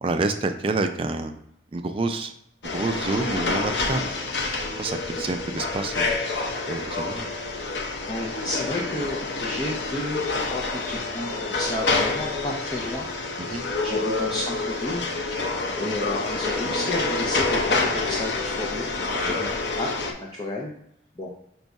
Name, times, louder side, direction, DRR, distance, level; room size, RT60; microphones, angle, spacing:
voice 1, 0.0-1.3 1.7-2.3 2.7-4.0 4.8-6.1 6.7-7.3 13.4-13.7 19.3-19.5, right 3 dB, 30° right, 7 dB, 0.3 m, -28 dB
sound 1, 2.6-20.1, left 3 dB, 75° left, 0.7 m, -27 dB
voice 2, 8.1-10.2 10.5-13.1 13.8-15.0 15.8-19.3 19.8-20.7 21.2-21.3, left 1 dB, 25° left, -3 dB, 0.5 m, -32 dB
5.3 x 2.3 x 4.0 m, 0.76 s
head